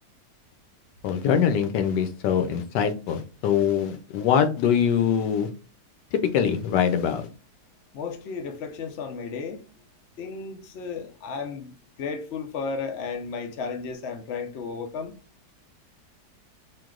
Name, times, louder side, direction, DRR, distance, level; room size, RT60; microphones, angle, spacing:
voice 1, 1.0-5.5 6.1-7.3, left 8 dB, 85° left, 1.3 m, -23 dB
voice 2, 7.9-9.7 10.2-15.1, left 5 dB, 65° left, 0.6 m, -34 dB
3.8 x 2.7 x 3.7 m
omnidirectional pair, 1.8 m